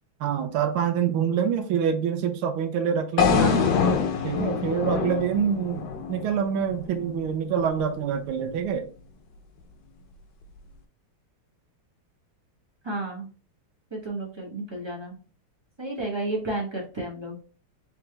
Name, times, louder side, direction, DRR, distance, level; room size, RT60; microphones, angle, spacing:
voice 1, 0.2-3.5 4.2-8.9, right 7 dB, 80° right, 1.5 m, -26 dB
sound 1, 3.2-7.3, left 6 dB, 70° left, 0.9 m, -25 dB
voice 2, 3.3-3.7 12.8-13.3 13.9-15.2 15.8-17.4, right 1 dB, 20° right, 0.7 m, -31 dB
3.9 x 3.4 x 3.3 m
omnidirectional pair, 2.4 m